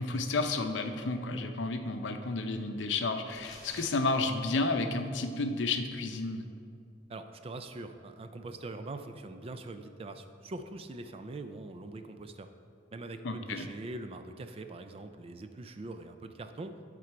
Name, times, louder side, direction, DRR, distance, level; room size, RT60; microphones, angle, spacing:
voice 1, 0.0-6.5 13.2-13.7, left 3 dB, 85° left, 7 dB, 0.6 m, -31 dB
sound 1, 3.3-4.0, left 2 dB, 25° left, 1.2 m, -48 dB
voice 2, 7.1-12.5 12.9-16.8, right 2 dB, 35° right, 8 dB, 0.4 m, -43 dB
11.0 x 3.8 x 4.5 m, 2.4 s
head